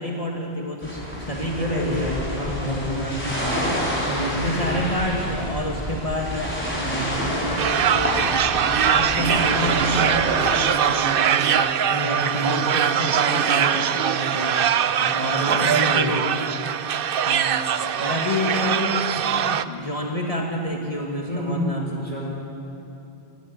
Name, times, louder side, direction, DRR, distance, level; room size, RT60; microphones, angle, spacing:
voice 1, 0.0-2.2 2.7-3.7 4.2-8.2 8.8-11.7 12.0-14.6 15.1-16.3 17.3-17.7 18.0-22.0, equal, 30° left, -1 dB, 2.0 m, -29 dB
sound 1, 0.8-10.6, equal, 10° left, 5.2 m, -28 dB
voice 2, 1.6-3.0 4.1-4.7 11.9-12.6 15.0-16.2 21.3-22.3, left 1 dB, 35° right, -3 dB, 5.3 m, -29 dB
sound 2, 7.6-19.6, right 8 dB, 60° right, 0.8 m, -22 dB
24.5 x 13.5 x 9.5 m, 2.8 s
omnidirectional pair, 1.1 m